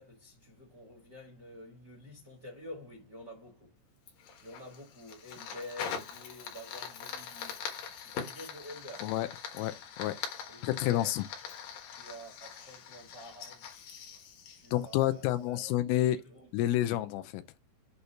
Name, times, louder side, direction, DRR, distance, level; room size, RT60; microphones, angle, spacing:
voice 1, 0.0-3.7 4.4-7.7 8.0-9.1 10.5-11.2 11.9-13.7 14.5-15.7 16.1-16.7, left 1 dB, 85° right, 0.9 m, -48 dB
Fire, 4.1-15.4, left 7 dB, 65° left, 2.5 m, -43 dB
voice 2, 9.5-10.2 10.6-11.2 14.7-16.2 16.5-17.4, left 14 dB, 85° left, 3.2 m, -29 dB
8.0 x 2.7 x 5.6 m
omnidirectional pair, 5.7 m